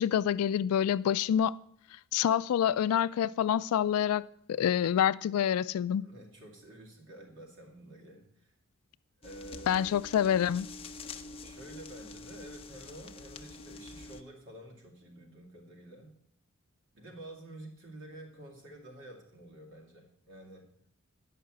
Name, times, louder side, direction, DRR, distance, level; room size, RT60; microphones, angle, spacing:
voice 1, 0.0-1.6 2.1-6.1 9.7-10.7, left 9 dB, 85° left, 0.3 m, -27 dB
voice 2, 6.0-8.5 9.2-10.1 11.4-16.2 16.9-20.7, right 1 dB, 60° right, 2.4 m, -50 dB
sound 1, 9.2-14.2, left 3 dB, 25° left, 0.6 m, -46 dB
10.0 x 5.6 x 7.6 m
head